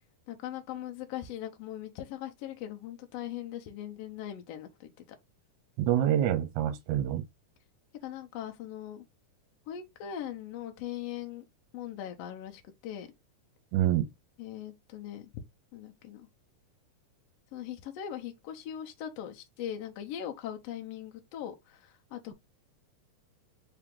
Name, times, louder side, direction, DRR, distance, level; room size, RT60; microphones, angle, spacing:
voice 1, 0.3-4.9 8.0-9.0 9.7-11.4 11.7-13.1 14.4-15.3 15.7-16.3 17.5-22.3, left 10 dB, 70° left, 1.7 m, -40 dB
voice 2, 5.8-7.2 13.7-14.1, right 11 dB, 80° right, 1.9 m, -26 dB
4.8 x 2.9 x 3.7 m
omnidirectional pair, 3.5 m